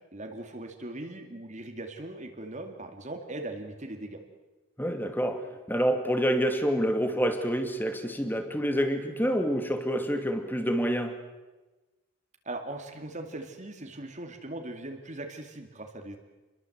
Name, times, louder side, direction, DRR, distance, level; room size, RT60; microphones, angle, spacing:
voice 1, 0.1-4.2 12.4-16.2, right 2 dB, 30° right, 2.4 m, -39 dB
voice 2, 4.8-11.2, equal, 10° left, 2.4 m, -27 dB
29.5 x 22.5 x 8.0 m
head